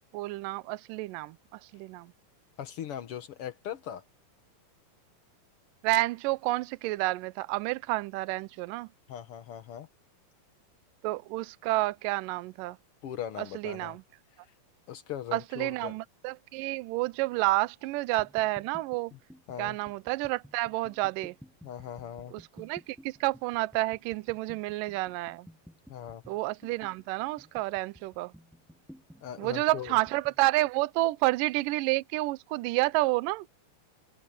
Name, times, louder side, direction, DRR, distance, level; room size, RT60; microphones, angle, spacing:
voice 1, 0.1-1.4 1.7-2.1 5.8-8.9 11.0-12.8 13.4-14.0 15.3-19.1 19.6-21.4 22.3-25.5 26.3-28.3 29.4-33.5, right 20 dB, 80° right, 2.0 m, -30 dB
voice 2, 2.6-4.0 9.1-9.9 13.0-14.0 14.4-14.5 14.9-16.0 19.1-19.2 19.5-19.8 21.6-22.3 25.9-26.2 29.2-30.0, left 10 dB, 80° left, 1.2 m, -39 dB
sound 1, 18.2-30.4, equal, ahead, 4.0 m, -54 dB
open air
omnidirectional pair, 4.2 m